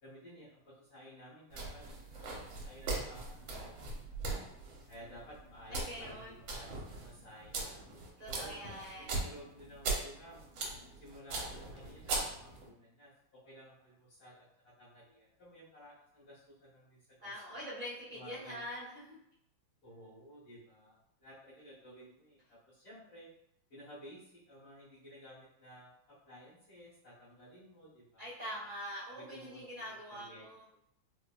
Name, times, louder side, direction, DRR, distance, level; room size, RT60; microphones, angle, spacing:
voice 1, 0.0-1.8 2.1-4.2 4.9-7.8 8.3-8.6 9.0-10.5 11.0-17.7 18.1-18.7 19.8-23.3 23.7-25.9 26.2-28.3 28.6-28.7 29.3-30.5, equal, 85° left, -13 dB, 2.2 m, -55 dB
sound 1, 1.5-12.7, right 3 dB, 70° right, 1.3 m, -40 dB
voice 2, 5.7-6.3 8.2-9.2 17.2-19.2 28.2-30.6, equal, 40° right, -9 dB, 0.5 m, -44 dB
4.3 x 2.0 x 2.3 m, 0.74 s
omnidirectional pair, 2.3 m